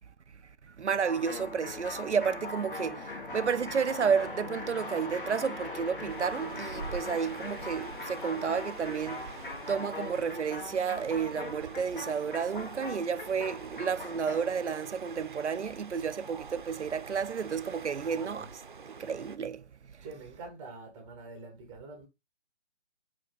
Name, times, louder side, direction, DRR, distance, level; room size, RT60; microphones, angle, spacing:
voice 1, 0.6-18.5 18.9-20.0, right 6 dB, 90° right, 0.5 m, -31 dB
sound 1, 1.0-14.6, left 2 dB, 50° left, 1.7 m, -40 dB
sound 2, 6.1-19.4, right 5 dB, 45° right, 0.6 m, -46 dB
voice 2, 17.9-18.6 20.0-22.1, right 3 dB, 5° right, 0.7 m, -46 dB
6.9 x 2.9 x 4.9 m
figure-of-eight pair, 145°, 34 cm